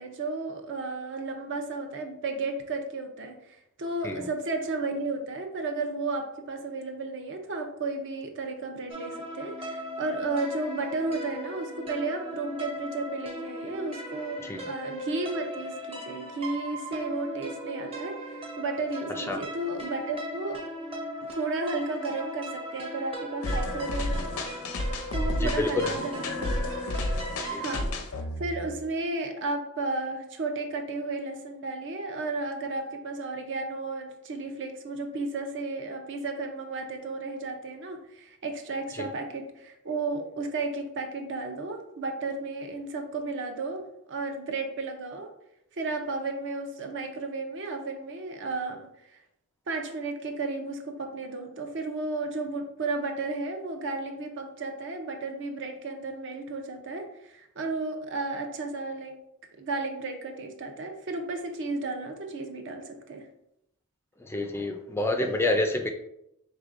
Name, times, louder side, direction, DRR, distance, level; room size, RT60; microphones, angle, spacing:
voice 1, 0.0-18.2 18.6-20.6 21.3-24.3 25.1-26.6 27.6-27.9 28.4-45.3 45.8-49.2 49.7-59.1 59.6-63.2, right 3 dB, 60° right, 4 dB, 0.6 m, -33 dB
sound 1, 8.9-27.8, right 1 dB, 25° right, 0.8 m, -38 dB
sound 2, 23.4-28.8, left 1 dB, 90° left, 0.6 m, -31 dB
voice 2, 25.4-25.9 27.4-27.6 39.0-39.1 64.3-65.9, left 2 dB, 10° left, 4 dB, 0.3 m, -28 dB
5.0 x 3.2 x 2.5 m, 0.81 s
head